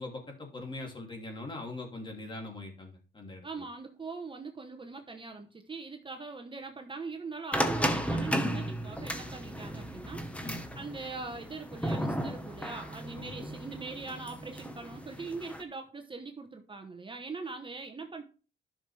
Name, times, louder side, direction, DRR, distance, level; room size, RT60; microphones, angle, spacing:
voice 1, 0.0-3.6 10.4-10.6 13.1-13.3, left 2 dB, 25° left, 2 dB, 2.7 m, -42 dB
voice 2, 3.4-10.3 10.7-18.2, right 4 dB, 25° right, 5 dB, 1.0 m, -42 dB
sound 1, 7.5-15.6, equal, 5° left, 1.1 m, -34 dB
11.0 x 6.1 x 3.3 m, 0.37 s
cardioid pair, 90°, 20 cm